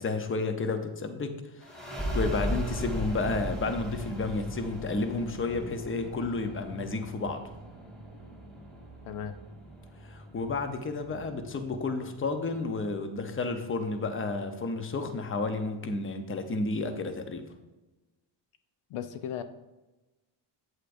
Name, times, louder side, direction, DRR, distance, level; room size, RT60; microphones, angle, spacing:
voice 1, 0.0-1.3 1.9-7.4 10.1-17.5, left 3 dB, 25° left, 7 dB, 0.8 m, -31 dB
sound 1, 1.6-12.9, right 1 dB, ahead, 1.8 m, -38 dB
voice 2, 9.0-9.4 18.9-19.4, left 9 dB, 80° left, 10 dB, 0.7 m, -36 dB
8.3 x 8.0 x 2.6 m, 1.1 s
cardioid pair, 105°, 50 cm